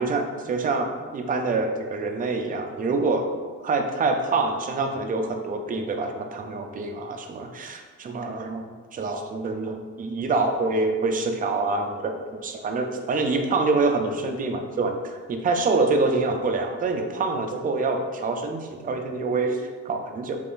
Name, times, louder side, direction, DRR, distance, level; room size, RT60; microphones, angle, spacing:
voice 1, 0.0-3.3 3.6-8.7 8.9-12.2 12.4-20.4, right 3 dB, 30° right, 4 dB, 0.4 m, -26 dB
3.4 x 3.1 x 2.5 m, 1.5 s
cardioid pair, 90°, 30 cm